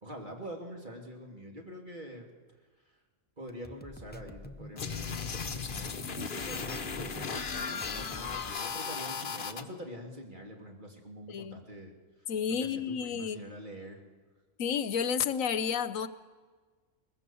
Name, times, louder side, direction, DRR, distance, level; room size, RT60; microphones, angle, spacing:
voice 1, 0.0-2.3 2.8-2.9 3.4-11.9 12.5-14.0, equal, 35° right, 1 dB, 2.7 m, -45 dB
sound 1, 3.5-8.6, left 2 dB, 15° left, 0.3 m, -47 dB
sound 2, 4.8-9.6, left 5 dB, 45° left, 1.1 m, -36 dB
voice 2, 11.3-11.6 12.3-13.4 14.6-16.1, left 7 dB, 80° left, 14 dB, 1.2 m, -31 dB
22.0 x 20.0 x 7.1 m, 1.4 s
omnidirectional pair, 1.4 m